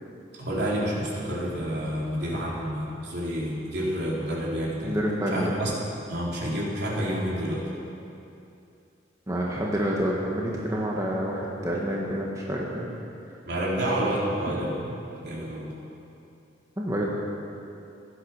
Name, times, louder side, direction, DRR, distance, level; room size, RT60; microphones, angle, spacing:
voice 1, 0.3-5.0 5.3-5.7 6.1-7.6 13.4-15.8, equal, 60° right, -5 dB, 3.8 m, -29 dB
voice 2, 4.8-5.6 9.3-12.9 16.8-17.1, equal, 20° right, -4 dB, 1.5 m, -28 dB
16.5 x 12.0 x 6.5 m, 2.7 s
head